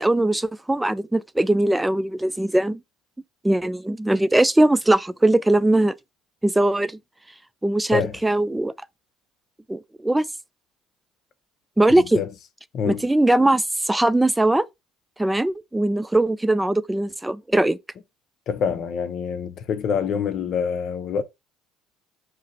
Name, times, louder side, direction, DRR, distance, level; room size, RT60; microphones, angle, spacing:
voice 1, 0.0-2.8 3.4-5.9 6.4-7.0 7.6-8.7 9.7-10.2 11.8-12.2 12.9-14.6 15.2-17.8, right 1 dB, 10° right, 0.3 m, -20 dB
voice 2, 12.0-12.3 12.7-13.1 18.5-21.2, left 7 dB, 55° left, 0.6 m, -26 dB
4.9 x 2.0 x 4.1 m
hypercardioid pair, 75°, 0 cm